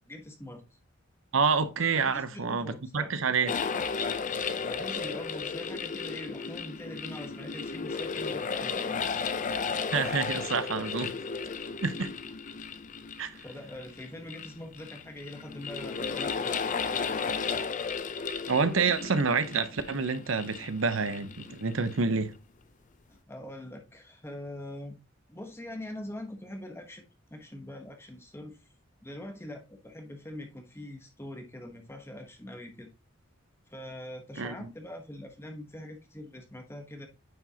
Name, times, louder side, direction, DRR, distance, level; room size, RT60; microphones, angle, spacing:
voice 1, 0.1-0.8 1.9-3.1 4.6-9.1 13.3-17.3 23.1-25.0 25.3-28.6 29.0-32.9 33.7-37.1, left 1 dB, 10° left, 1.0 m, -43 dB
voice 2, 1.3-3.5 9.9-11.1 11.8-12.1 13.2-13.3 18.5-22.3 34.4-34.7, right 5 dB, 75° right, 0.8 m, -28 dB
sound 1, 3.5-22.1, left 5 dB, 40° left, 0.5 m, -34 dB
9.4 x 4.9 x 2.8 m
head